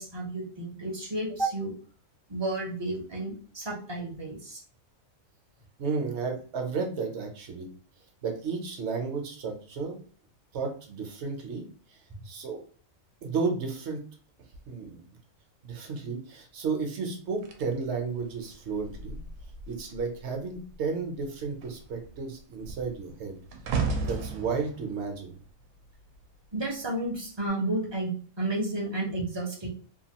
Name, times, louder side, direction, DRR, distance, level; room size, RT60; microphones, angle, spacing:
voice 1, 0.0-1.7 2.3-4.6 26.5-29.7, right 2 dB, 25° right, -2 dB, 0.6 m, -32 dB
voice 2, 5.8-7.7 8.2-10.0 10.5-12.6 13.2-14.0 14.7-15.0 15.6-19.2 19.7-23.3 24.0-25.4, right 4 dB, 60° right, 3 dB, 0.9 m, -33 dB
sound 1, 17.4-20.2 20.5-20.8 21.1-26.5 27.2-27.5, right 4 dB, 85° right, 1.0 m, -36 dB
2.9 x 2.3 x 2.8 m, 0.44 s
omnidirectional pair, 1.4 m